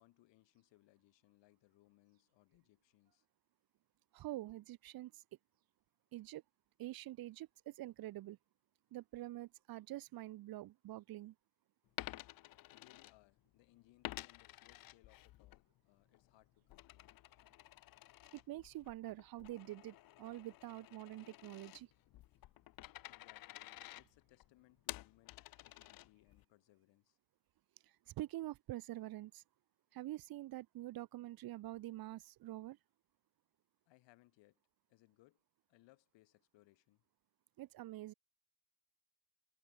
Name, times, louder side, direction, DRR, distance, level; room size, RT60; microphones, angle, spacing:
voice 1, 0.0-3.3 12.7-17.2 23.1-27.2 33.9-34.6 34.9-35.4 35.7-37.1, left 19 dB, 85° left, 7.2 m, -69 dB
voice 2, 4.1-5.2 6.1-6.4 6.8-8.4 8.9-11.3 18.3-21.9 27.8-29.4 29.9-32.8 37.6-38.1, right 16 dB, 55° right, 0.7 m, -46 dB
Coin (dropping), 11.9-13.6 14.0-15.6 16.0-26.4, left 16 dB, 55° left, 0.6 m, -52 dB
cardioid pair, 100°, 43 cm